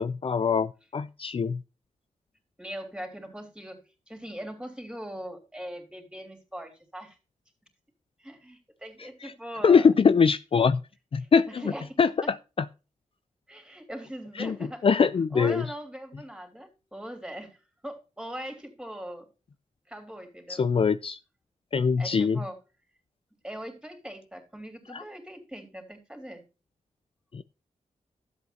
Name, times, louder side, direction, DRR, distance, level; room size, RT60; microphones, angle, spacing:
voice 1, 0.0-1.6 9.2-9.3 9.6-10.8 11.1-11.6 12.0-12.1 14.4-14.6 14.8-15.6 20.5-21.2 21.7-22.4 24.9-25.0 27.3-27.4, left 5 dB, 45° left, 0.5 m, -22 dB
voice 2, 2.6-3.8 4.1-7.2 8.2-9.9 11.2-12.3 13.5-14.9 15.3-19.3 19.9-20.6 22.0-22.6 23.4-26.4, equal, 5° right, 3.3 m, -41 dB
12.5 x 8.1 x 2.8 m
cardioid pair, 85°, 13 cm